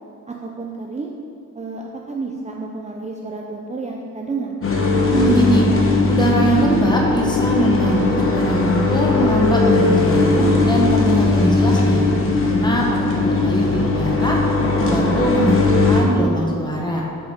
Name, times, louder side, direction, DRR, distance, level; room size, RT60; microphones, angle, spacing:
voice 1, 0.3-1.2 1.6-4.6, right 3 dB, 20° right, 0 dB, 0.5 m, -30 dB
sound 1, 4.6-16.0, left 3 dB, 40° left, 1.1 m, -18 dB
voice 2, 5.1-5.7 6.1-12.0 12.4-14.4 14.8-17.0, equal, 15° left, -2 dB, 1.4 m, -21 dB
7.8 x 5.6 x 6.5 m, 2.5 s
wide cardioid pair, 165°, 32 cm